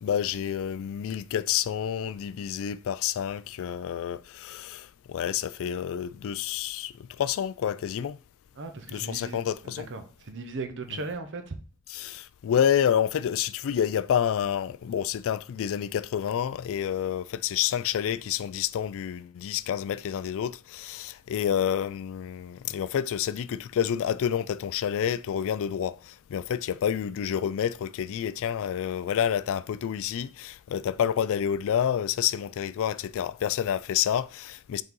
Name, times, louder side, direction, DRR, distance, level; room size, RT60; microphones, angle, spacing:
voice 1, 0.0-8.2 8.9-9.9 11.9-34.8, left 9 dB, 60° left, 0.3 m, -28 dB
voice 2, 8.6-11.5, right 3 dB, 55° right, 0.9 m, -37 dB
5.3 x 3.9 x 5.4 m
head